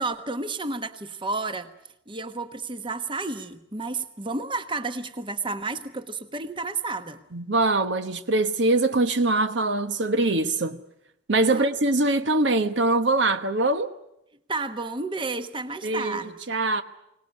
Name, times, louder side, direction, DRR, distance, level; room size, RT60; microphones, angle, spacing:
voice 1, 0.0-1.7 2.1-7.2 11.5-11.6 14.5-16.4, right 3 dB, 25° right, 1.2 m, -31 dB
voice 2, 7.3-10.8 11.3-13.9 15.8-16.8, right 2 dB, 65° right, 1.2 m, -23 dB
24.0 x 19.0 x 9.5 m
head